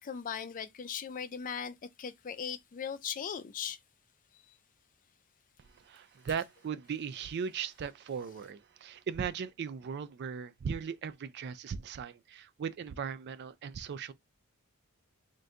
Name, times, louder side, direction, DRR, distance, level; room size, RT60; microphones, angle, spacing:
voice 1, 0.0-3.8 4.3-4.6, left 7 dB, 35° left, 0.4 m, -39 dB
voice 2, 5.6-14.1, right 6 dB, 50° right, 0.3 m, -38 dB
3.7 x 2.6 x 3.3 m
head